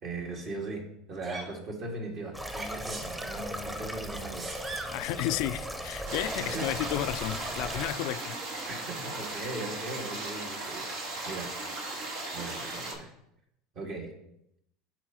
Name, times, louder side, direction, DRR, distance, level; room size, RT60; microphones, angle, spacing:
voice 1, 0.0-4.6 6.4-6.9 8.7-11.5 12.3-13.1 13.7-14.1, right 2 dB, 50° right, 2.0 m, -39 dB
Sneeze, 1.2-1.5 2.5-3.4 4.1-5.0 6.3-6.4, right 2 dB, 35° right, 2.2 m, -40 dB
sound 1, 2.3-7.9, equal, 10° right, 0.9 m, -38 dB
voice 2, 4.9-8.4, left 14 dB, 65° left, 0.3 m, -32 dB
sound 2, 6.1-12.9, right 2 dB, 70° right, 1.6 m, -37 dB
11.0 x 4.5 x 3.0 m
hypercardioid pair, 85°, 0 cm